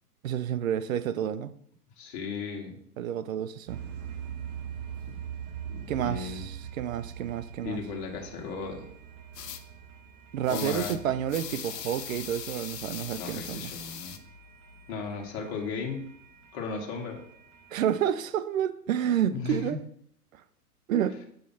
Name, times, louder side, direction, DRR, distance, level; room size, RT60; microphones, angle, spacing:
voice 1, 0.2-1.5 3.0-3.8 5.9-7.8 10.3-13.7 17.7-19.8 20.3-20.4 20.9-21.2, right 10 dB, 60° right, 0.6 m, -29 dB
voice 2, 2.0-2.8 5.1-5.2 5.7-6.4 7.6-8.9 10.5-11.0 13.2-14.2 14.9-16.1 16.5-17.2 19.3-19.8, left 4 dB, 40° left, 1.5 m, -35 dB
sound 1, 3.7-18.0, right 8 dB, 35° right, 1.0 m, -44 dB
sound 2, 9.3-9.6 10.5-11.0 11.3-14.2, left 9 dB, 85° left, 0.8 m, -39 dB
7.1 x 3.2 x 5.6 m
hypercardioid pair, 130°, 48 cm